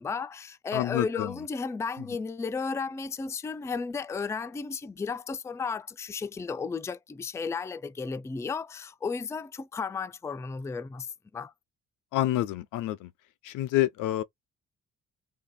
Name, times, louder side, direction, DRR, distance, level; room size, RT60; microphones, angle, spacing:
voice 1, 0.0-11.5, left 5 dB, 10° left, 0.3 m, -34 dB
voice 2, 0.7-1.3 12.1-13.1 13.5-14.2, left 14 dB, 85° left, 0.6 m, -28 dB
2.8 x 2.7 x 4.1 m
cardioid pair, 90°, 30 cm